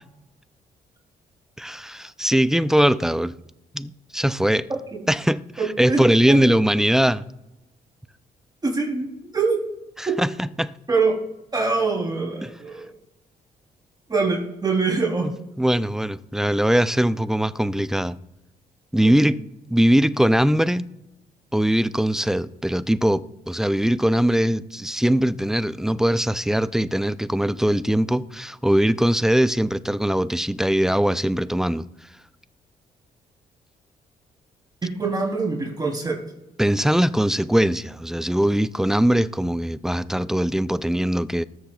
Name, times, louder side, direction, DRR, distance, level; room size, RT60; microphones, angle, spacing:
voice 1, 1.6-3.3 3.7-4.7 5.1-5.4 5.8-7.3 10.0-10.7 12.4-12.5 15.2-15.3 15.6-18.2 18.9-19.4 19.7-20.9 21.5-31.9 36.6-41.4, equal, 5° right, 0.4 m, -21 dB
voice 2, 5.6-6.0 6.3-6.6 8.6-9.1 9.3-9.6 10.0-10.2 10.9-11.1 11.5-12.9 14.1-15.3 19.0-19.3 34.8-36.2, right 4 dB, 25° right, 3.2 m, -24 dB
20.0 x 7.6 x 2.4 m
cardioid pair, 80°, 16 cm